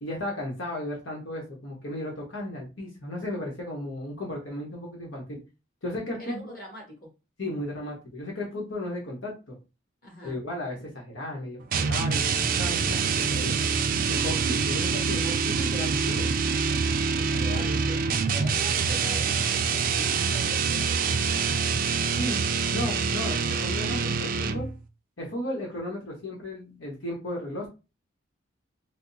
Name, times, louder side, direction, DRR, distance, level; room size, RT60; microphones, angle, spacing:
voice 1, 0.0-5.4 5.8-6.4 7.4-9.5 10.2-13.7 14.1-16.3 17.4-17.9 22.2-22.4 22.7-24.7 25.2-27.7, left 1 dB, 85° left, -1 dB, 1.1 m, -35 dB
voice 2, 6.2-7.1 10.0-10.4 17.2-18.0 18.3-21.2, equal, 45° left, -2 dB, 1.7 m, -43 dB
sound 1, 11.7-24.8, right 5 dB, 45° right, 0.4 m, -26 dB
3.4 x 2.0 x 4.0 m, 0.29 s
head